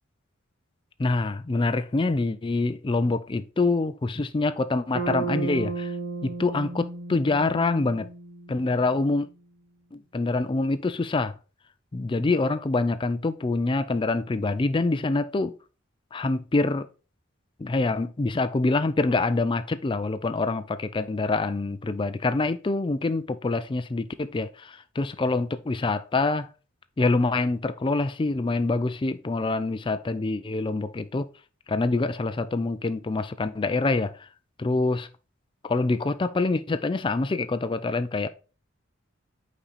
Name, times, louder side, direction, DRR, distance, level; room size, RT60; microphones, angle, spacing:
voice 1, 1.0-5.9 6.2-8.1 8.5-9.3 9.9-11.3 11.9-15.6 16.1-16.9 17.6-26.5 27.0-31.3 31.7-34.3 34.6-35.1 35.6-38.3, left 3 dB, 25° left, 0.4 m, -25 dB
Bass guitar, 4.9-9.0, right 4 dB, 45° right, 1.0 m, -34 dB
5.6 x 4.3 x 4.1 m
head